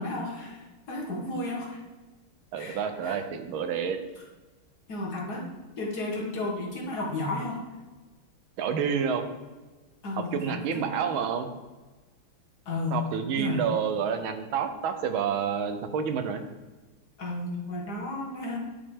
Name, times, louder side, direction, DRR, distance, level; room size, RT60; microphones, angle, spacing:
voice 1, 0.0-1.8 2.6-3.2 4.9-5.5 5.8-7.6 10.0-11.1 12.7-13.0 13.4-13.6 17.2-18.6, left 2 dB, 50° left, -2 dB, 1.9 m, -33 dB
voice 2, 2.5-4.0 8.6-9.2 10.2-11.5 12.9-16.4, right 7 dB, 80° right, 8 dB, 1.6 m, -29 dB
11.0 x 5.1 x 3.6 m, 1.2 s
omnidirectional pair, 2.2 m